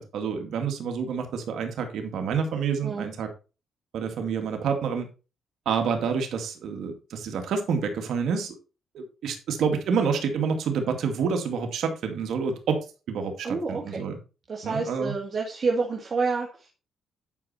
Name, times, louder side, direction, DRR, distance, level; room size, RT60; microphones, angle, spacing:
voice 1, 0.0-3.3 3.9-5.1 5.7-8.5 8.9-12.8 13.1-14.2 14.6-15.1, right 6 dB, 70° right, 5 dB, 2.3 m, -28 dB
voice 2, 13.4-14.0 14.5-16.7, right 4 dB, 45° right, 0 dB, 2.0 m, -28 dB
11.0 x 5.1 x 4.3 m, 0.32 s
cardioid pair, 90°, 0 cm